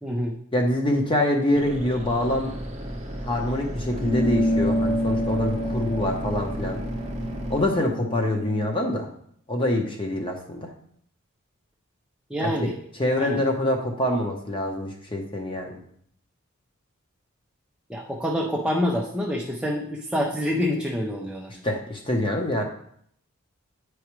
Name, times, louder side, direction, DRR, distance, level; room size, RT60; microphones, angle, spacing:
voice 1, 0.0-0.4 12.3-12.7 13.2-13.4 17.9-21.5, equal, 5° right, -2 dB, 0.5 m, -27 dB
voice 2, 0.5-2.5 3.2-6.8 7.5-9.1 9.5-10.7 12.4-12.7 13.0-15.8 21.6-22.6, left 1 dB, 25° left, 2 dB, 0.9 m, -25 dB
sound 1, 1.5-7.7, equal, 30° right, 0.8 m, -33 dB
sound 2, 4.0-8.8, equal, 50° left, 0.7 m, -28 dB
9.1 x 4.8 x 3.2 m, 0.66 s
head